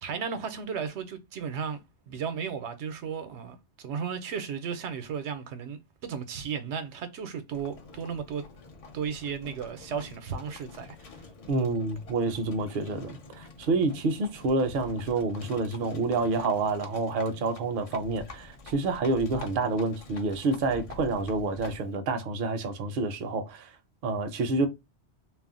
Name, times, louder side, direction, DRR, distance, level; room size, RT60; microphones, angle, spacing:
voice 1, 0.0-1.8 2.1-8.4 8.9-11.2, right 6 dB, 85° right, 0.9 m, -35 dB
Livestock farm animals working animals, 7.5-21.9, left 3 dB, 50° left, 0.4 m, -47 dB
voice 2, 11.5-23.7 24.0-24.7, right 3 dB, 60° right, 0.6 m, -28 dB
2.4 x 2.0 x 3.6 m
omnidirectional pair, 1.1 m